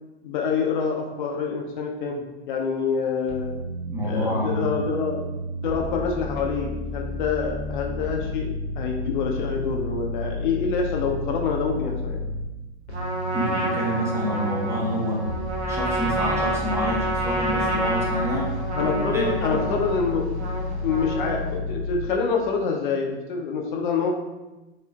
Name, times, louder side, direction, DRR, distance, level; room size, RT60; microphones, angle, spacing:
voice 1, 0.2-3.5 4.0-5.2 5.6-8.5 8.8-12.2 18.7-20.3 20.8-24.1, left 5 dB, 50° left, 1 dB, 0.5 m, -26 dB
sound 1, 3.3-12.5 12.9-22.1, left 2 dB, 80° left, 0.8 m, -31 dB
voice 2, 3.8-4.8 13.3-15.2 15.6-18.5 18.8-19.6, equal, 10° right, -4 dB, 0.7 m, -28 dB
Trumpet, 12.9-21.6, right 2 dB, 75° right, 0.7 m, -29 dB
4.7 x 2.4 x 2.2 m, 1.1 s
figure-of-eight pair, 100°, 33 cm